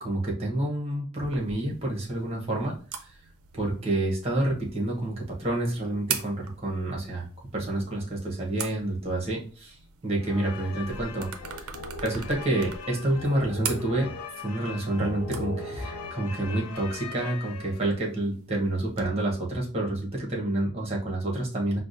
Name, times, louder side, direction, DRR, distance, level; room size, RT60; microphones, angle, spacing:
voice 1, 0.0-2.7 3.5-7.2 7.5-9.7 10.0-11.3 11.6-11.7 12.0-14.1 14.4-21.8, right 1 dB, 30° right, -2 dB, 1.0 m, -28 dB
sound 1, 1.2-19.0, right 7 dB, 75° right, 0.5 m, -42 dB
sound 2, 10.2-18.1, left 4 dB, 85° left, 0.4 m, -39 dB
4.6 x 2.1 x 2.6 m, 0.40 s
head